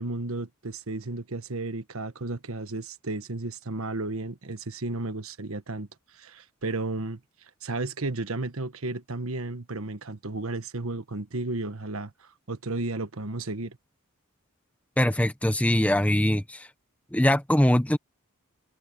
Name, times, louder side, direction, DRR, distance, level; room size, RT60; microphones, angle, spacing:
voice 1, 0.0-5.9 6.1-7.2 7.6-13.8, right 2 dB, 70° right, 1.3 m, -33 dB
voice 2, 15.0-16.7 17.1-18.0, left 1 dB, 5° left, 0.9 m, -22 dB
head